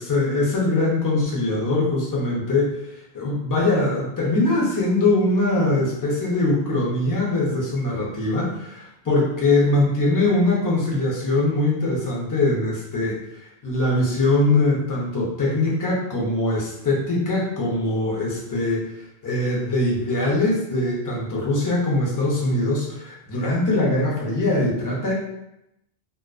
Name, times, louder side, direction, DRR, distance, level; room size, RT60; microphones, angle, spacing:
voice 1, 0.0-25.1, left 2 dB, 25° left, -4 dB, 0.4 m, -22 dB
2.5 x 2.3 x 2.3 m, 0.84 s
omnidirectional pair, 1.1 m